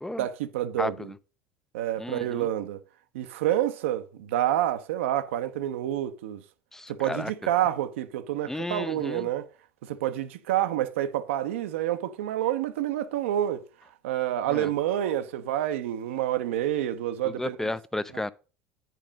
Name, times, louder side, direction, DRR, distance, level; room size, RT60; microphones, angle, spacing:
voice 1, 0.2-1.1 1.7-2.8 3.1-6.4 6.9-9.5 9.8-13.6 14.0-17.7, right 12 dB, 75° right, 0.7 m, -28 dB
voice 2, 0.8-1.1 2.0-2.5 6.7-7.3 8.5-9.3 14.5-14.7 17.2-18.3, left 2 dB, 5° left, 0.5 m, -33 dB
9.2 x 4.9 x 5.1 m
hypercardioid pair, 75°, 7 cm